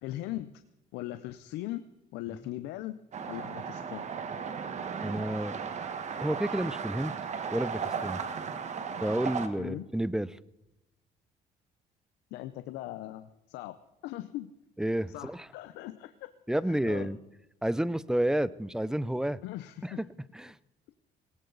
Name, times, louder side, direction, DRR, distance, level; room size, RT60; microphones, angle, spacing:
voice 1, 0.0-0.6 0.9-1.8 2.1-3.0 3.3-4.1 9.6-9.9 12.3-13.8 14.0-14.5 15.1-16.3 16.7-17.1 19.4-20.0, left 15 dB, 90° left, 11 dB, 0.7 m, -39 dB
sound 1, 3.1-9.5, right 6 dB, 45° right, 1.4 m, -36 dB
voice 2, 5.0-5.7 6.2-7.1 7.5-8.2 9.0-10.3 14.8-15.5 16.5-17.2 17.6-19.4 19.8-20.1 20.3-20.5, right 1 dB, 5° right, 19 dB, 0.5 m, -30 dB
18.5 x 17.5 x 4.0 m, 0.97 s
cardioid pair, 110°, 17 cm